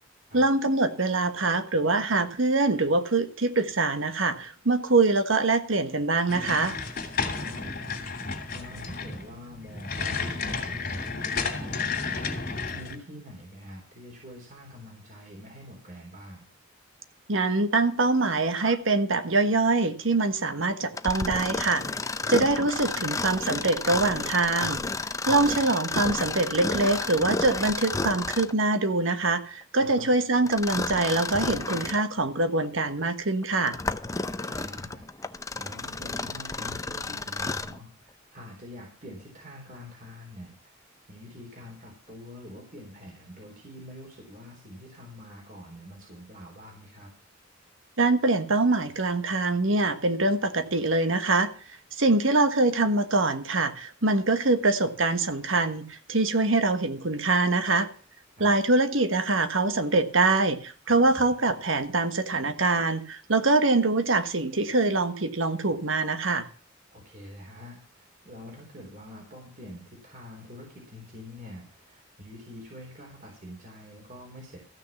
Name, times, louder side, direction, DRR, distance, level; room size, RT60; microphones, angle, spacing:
voice 1, 0.3-6.8 17.3-21.8 22.3-24.8 25.3-33.7 48.0-51.5 51.9-57.9 58.4-66.5, right 3 dB, 70° right, 9 dB, 1.4 m, -24 dB
sound 1, 6.3-13.0, left 4 dB, 45° left, 3.0 m, -32 dB
voice 2, 7.3-8.0 8.3-16.4 25.3-25.5 29.8-30.1 34.4-35.0 35.5-47.1 58.4-58.6 66.9-74.6, left 1 dB, 45° right, -1 dB, 3.9 m, -45 dB
Mechanisms, 20.9-28.6 30.5-32.1 32.6-32.7 33.4-37.8, left 3 dB, 15° left, 0.6 m, -31 dB
14.5 x 6.5 x 7.2 m, 0.43 s
head